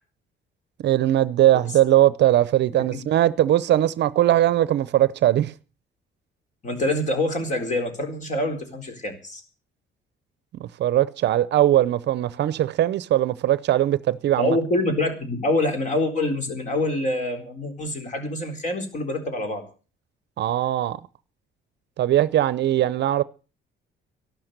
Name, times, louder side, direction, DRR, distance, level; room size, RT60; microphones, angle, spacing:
voice 1, 0.8-5.5 10.5-14.5 20.4-21.0 22.0-23.2, right 13 dB, 55° right, 0.7 m, -20 dB
voice 2, 6.6-9.4 14.4-19.6, left 1 dB, 35° left, 4.2 m, -25 dB
13.0 x 12.0 x 6.6 m
cardioid pair, 155°, 21 cm